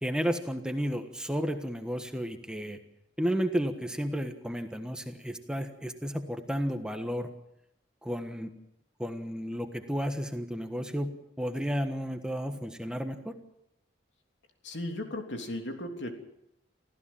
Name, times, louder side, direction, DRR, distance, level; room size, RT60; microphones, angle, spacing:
voice 1, 0.0-2.8 3.2-7.3 8.0-8.5 9.0-13.4, equal, 5° right, 6 dB, 1.4 m, -32 dB
voice 2, 14.6-16.1, left 1 dB, 75° left, 4 dB, 3.2 m, -36 dB
25.5 x 15.5 x 7.3 m, 0.80 s
head